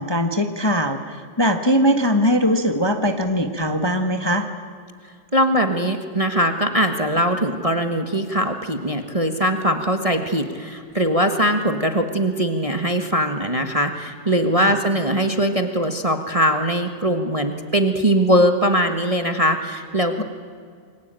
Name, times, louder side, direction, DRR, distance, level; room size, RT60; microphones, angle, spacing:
voice 1, 0.0-4.5 14.6-14.8 20.2-20.3, equal, 15° left, 6 dB, 1.3 m, -21 dB
voice 2, 5.3-20.2, equal, 20° right, 6 dB, 1.4 m, -21 dB
28.5 x 23.5 x 9.1 m, 2.1 s
omnidirectional pair, 2.0 m